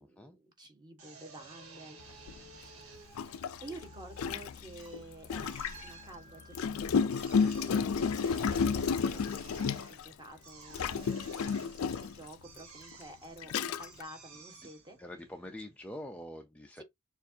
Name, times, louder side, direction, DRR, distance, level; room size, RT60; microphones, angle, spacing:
voice 1, 0.0-2.0 3.0-15.0 16.8-16.9, right 2 dB, 20° right, 1.3 m, -51 dB
Drill, 1.0-16.3, right 4 dB, 75° right, 1.4 m, -54 dB
sound 1, 1.7-8.2, right 2 dB, 35° right, 3.0 m, -60 dB
Gurgling, 2.3-2.4 3.1-5.9 6.5-10.1 10.7-12.2 12.9-13.0 13.4-14.0, left 5 dB, 85° left, 0.4 m, -31 dB
voice 2, 15.0-16.8, left 1 dB, 5° left, 0.4 m, -45 dB
6.6 x 2.4 x 2.7 m
head